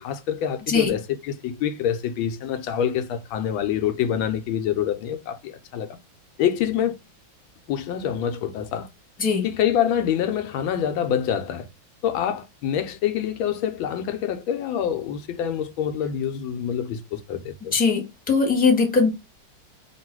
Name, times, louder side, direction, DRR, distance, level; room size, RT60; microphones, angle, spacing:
voice 1, 0.0-6.0 6.4-7.0 7.7-8.9 9.4-11.7 12.0-17.7, left 9 dB, 85° left, 1.4 m, -26 dB
voice 2, 17.7-19.1, left 4 dB, 5° left, 1.0 m, -20 dB
3.0 x 3.0 x 4.5 m
omnidirectional pair, 2.1 m